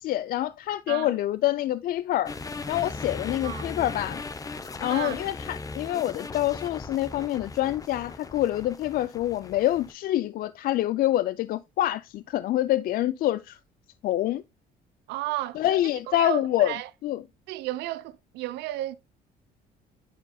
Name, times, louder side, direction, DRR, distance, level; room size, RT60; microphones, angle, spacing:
voice 1, 0.0-2.3 2.7-4.2 4.8-13.6 14.0-14.4 15.6-16.7 17.0-17.2, left 14 dB, 60° left, 0.4 m, -26 dB
sound 1, 2.3-9.9, left 3 dB, 20° left, 0.7 m, -38 dB
voice 2, 4.9-5.2 15.1-15.6 16.1-16.9 17.5-19.0, right 16 dB, 90° right, 0.6 m, -33 dB
10.0 x 5.3 x 2.2 m
cardioid pair, 110°, 17 cm